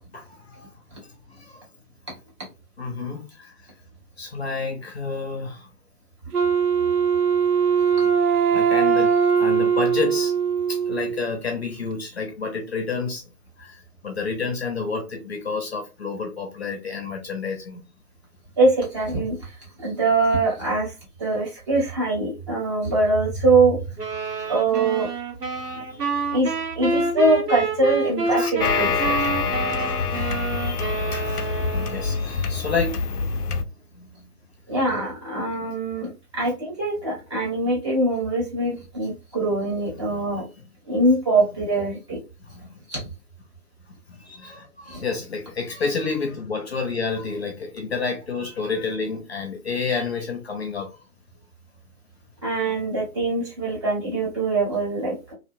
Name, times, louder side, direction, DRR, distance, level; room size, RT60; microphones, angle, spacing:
voice 1, 0.1-0.7 1.0-1.6 2.8-3.5 4.2-5.7 8.5-10.3 10.7-13.2 13.6-17.8 24.4-24.6 25.7-26.4 28.3-28.5 29.5-33.3 33.9-34.3 40.0-40.1 42.4-42.8 44.1-51.0, left 4 dB, 45° left, 0.7 m, -30 dB
Wind instrument woodwind instrument, 6.3-11.3, right 7 dB, 75° right, 0.6 m, -20 dB
voice 2, 18.6-19.5 19.8-20.9 21.2-23.8 24.5-25.1 25.7-25.8 26.3-29.2 34.7-40.4 40.8-42.2 42.9-43.0 44.9-45.0 52.4-55.3, right 2 dB, 20° right, 0.9 m, -23 dB
sound 1, 24.0-32.3, right 3 dB, 90° right, 1.0 m, -28 dB
sound 2, 28.6-33.6, left 5 dB, 80° left, 0.6 m, -26 dB
2.7 x 2.1 x 2.5 m
figure-of-eight pair, 140°, 46 cm